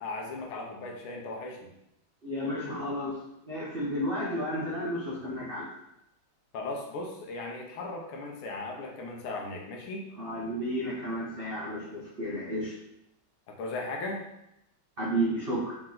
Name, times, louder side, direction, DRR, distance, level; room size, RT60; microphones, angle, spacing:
voice 1, 0.0-1.7 6.5-10.1 13.5-14.2, left 2 dB, 80° left, 0 dB, 1.6 m, -37 dB
voice 2, 2.2-3.2 3.4-5.8 10.2-12.8 15.0-15.8, equal, 80° right, -6 dB, 0.5 m, -32 dB
4.4 x 3.0 x 3.7 m, 0.85 s
omnidirectional pair, 2.3 m